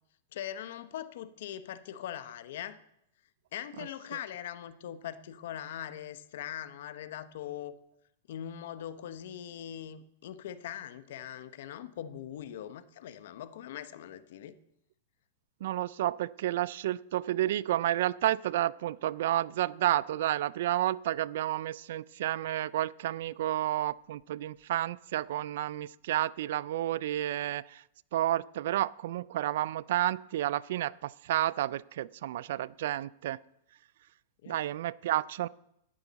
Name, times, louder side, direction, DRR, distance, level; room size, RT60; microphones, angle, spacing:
voice 1, 0.3-2.8 3.5-7.8 8.3-14.6 34.4-34.6, left 10 dB, 65° left, 14 dB, 0.8 m, -41 dB
voice 2, 15.6-27.8 28.1-33.4 34.5-35.5, right 13 dB, 65° right, 20 dB, 0.3 m, -31 dB
12.5 x 9.6 x 4.0 m, 0.79 s
supercardioid pair, 145°, 0 cm